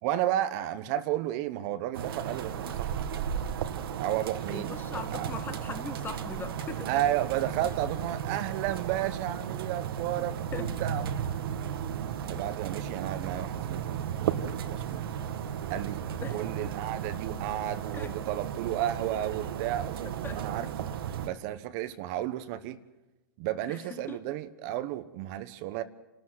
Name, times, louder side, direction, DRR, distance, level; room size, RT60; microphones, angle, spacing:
voice 1, 0.0-3.0 4.0-5.4 6.9-11.2 12.3-15.1 15.7-16.0 16.3-20.9 21.2-22.8 23.4-25.8, right 12 dB, 45° right, 1.1 m, -33 dB
sound 1, 1.9-21.3, right 8 dB, 75° right, 1.8 m, -35 dB
voice 2, 4.5-6.9 10.5-10.7 16.2-16.4 17.9-18.2 20.2-20.4 23.7-24.2, left 4 dB, 15° left, 1.7 m, -40 dB
28.5 x 13.0 x 7.9 m
hypercardioid pair, 135°, 12 cm